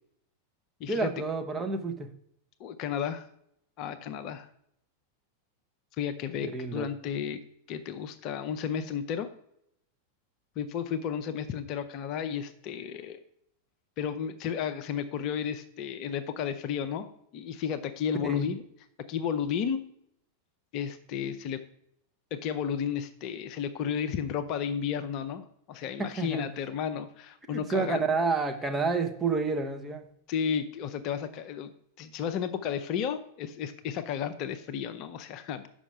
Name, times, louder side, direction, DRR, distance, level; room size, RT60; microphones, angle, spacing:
voice 1, 0.9-2.1 6.5-6.9 18.2-18.5 26.0-26.5 27.5-30.1, right 4 dB, 15° right, 4 dB, 0.9 m, -29 dB
voice 2, 2.6-3.3 3.8-4.5 6.0-7.4 7.7-9.3 10.6-13.2 14.0-17.1 17.3-18.6 19.1-19.8 20.7-21.6 22.3-28.0 30.3-31.7 32.0-35.7, left 8 dB, 40° left, 9 dB, 0.6 m, -33 dB
6.1 x 5.6 x 4.9 m, 0.72 s
figure-of-eight pair, 90°, 0 cm